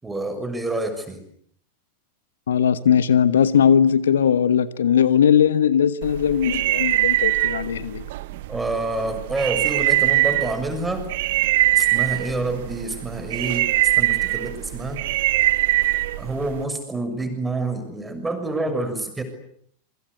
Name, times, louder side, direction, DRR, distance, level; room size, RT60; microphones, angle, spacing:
voice 1, 0.0-1.2 8.5-11.1 11.7-13.7 14.0-15.0 16.2-19.2, right 2 dB, 10° right, 8 dB, 6.7 m, -27 dB
voice 2, 2.5-8.0 13.5-13.6, left 8 dB, 65° left, 16 dB, 1.2 m, -19 dB
sound 1, 6.0-16.6, right 16 dB, 55° right, 1.2 m, -23 dB
28.0 x 24.5 x 8.4 m, 0.67 s
figure-of-eight pair, 90°, 0 cm